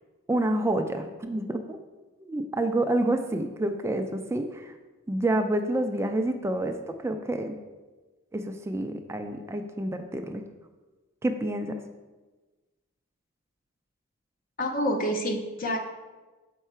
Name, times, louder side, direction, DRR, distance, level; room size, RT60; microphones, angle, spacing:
voice 1, 0.3-1.8 2.2-4.7 5.1-7.6 8.3-10.4 11.2-11.8, right 1 dB, 15° right, 6 dB, 0.3 m, -28 dB
voice 2, 14.6-15.8, equal, 45° left, 4 dB, 0.6 m, -27 dB
6.7 x 4.6 x 4.4 m, 1.2 s
head